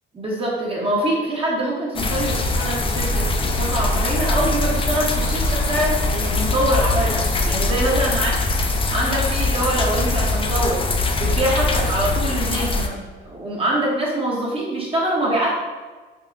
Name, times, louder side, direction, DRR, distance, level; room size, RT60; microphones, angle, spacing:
voice 1, 0.1-8.3 8.7-10.8 11.2-15.5, right 1 dB, 30° right, -5 dB, 0.9 m, -24 dB
sound 1, 1.9-12.9, left 2 dB, 25° left, 0.4 m, -22 dB
3.7 x 2.0 x 3.7 m, 1.3 s
cardioid pair, 90°, 20 cm